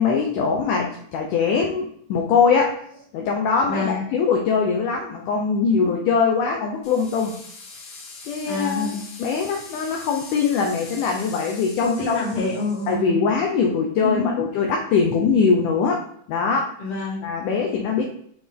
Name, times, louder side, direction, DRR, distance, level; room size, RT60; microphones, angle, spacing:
voice 1, 0.0-2.7 3.1-7.4 8.2-12.2 12.9-16.0 16.3-16.7 17.2-18.0, left 5 dB, 90° left, 1 dB, 1.7 m, -22 dB
voice 2, 3.6-4.0 8.4-9.0 11.8-13.3 14.0-14.4 16.8-17.3, left 2 dB, 30° left, -7 dB, 0.8 m, -27 dB
sound 1, 6.8-12.9, left 3 dB, 60° left, 1.6 m, -42 dB
8.1 x 3.5 x 3.7 m, 0.64 s
omnidirectional pair, 4.5 m